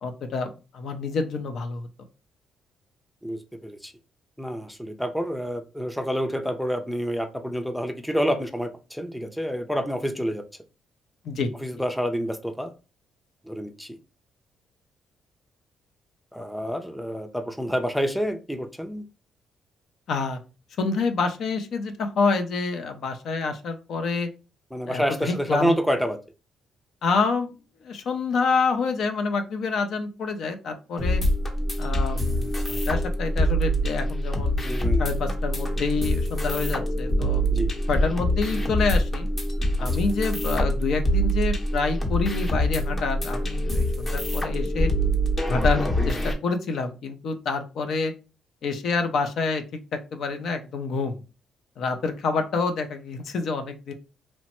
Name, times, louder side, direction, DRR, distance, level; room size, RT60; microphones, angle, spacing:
voice 1, 0.0-1.9 11.2-11.5 20.1-20.4 20.8-24.3 24.9-25.8 27.0-27.5 27.8-31.2 31.8-34.5 35.0-37.4 37.9-39.3 39.8-44.9 45.5-48.1 48.6-49.6 49.9-51.2 51.8-53.9, left 4 dB, 70° left, 0.5 m, -27 dB
voice 2, 3.2-3.9 4.4-10.4 11.6-12.7 13.4-14.0 16.3-19.1 24.7-26.2 34.6-35.1 37.5-37.7 39.8-39.9, equal, ahead, 0.4 m, -28 dB
sound 1, 31.0-46.3, equal, 30° left, 0.8 m, -25 dB
3.0 x 2.1 x 2.9 m
cardioid pair, 90°, 0 cm